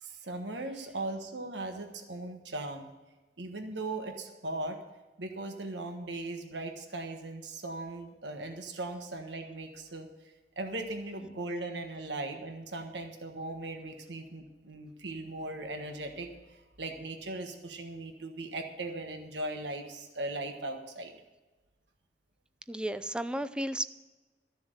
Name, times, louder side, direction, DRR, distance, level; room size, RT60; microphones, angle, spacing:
voice 1, 0.0-2.9 3.4-4.8 5.2-10.1 10.6-21.1, right 2 dB, 85° right, 5 dB, 1.4 m, -38 dB
voice 2, 22.7-23.8, right 1 dB, 5° right, 13 dB, 0.5 m, -33 dB
14.0 x 7.1 x 8.0 m, 1.2 s
head